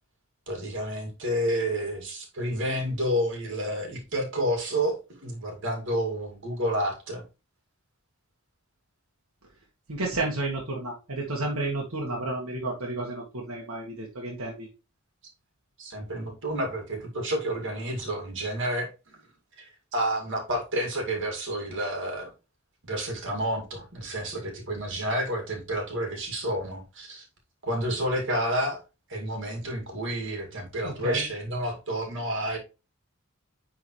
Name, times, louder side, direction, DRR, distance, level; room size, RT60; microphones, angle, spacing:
voice 1, 0.5-7.2 15.8-18.9 19.6-22.3 22.9-27.2 27.6-28.8 29.1-32.6, equal, 60° right, 2 dB, 2.2 m, -30 dB
voice 2, 9.9-14.7 30.8-31.2, right 2 dB, 75° right, -2 dB, 1.6 m, -31 dB
9.7 x 3.9 x 3.1 m, 0.29 s
head